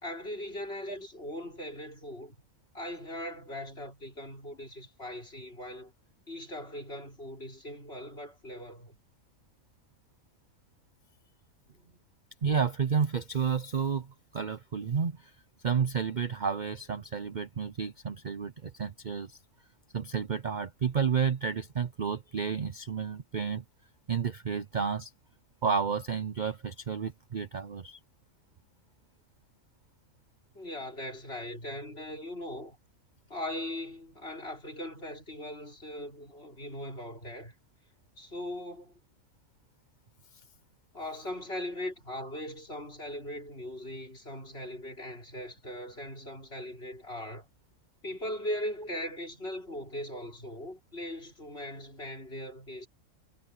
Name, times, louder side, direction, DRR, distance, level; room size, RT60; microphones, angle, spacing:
voice 1, 0.0-2.4 2.7-5.9 6.3-9.0 11.7-12.0 30.5-32.8 33.3-37.5 38.2-38.9 40.9-47.5 48.0-52.9, left 1 dB, 45° left, 6.0 m, -39 dB
voice 2, 12.4-15.3 15.6-19.4 19.9-23.6 24.1-25.1 25.6-28.0, right 6 dB, 40° right, 0.7 m, -31 dB
omnidirectional pair, 1.5 m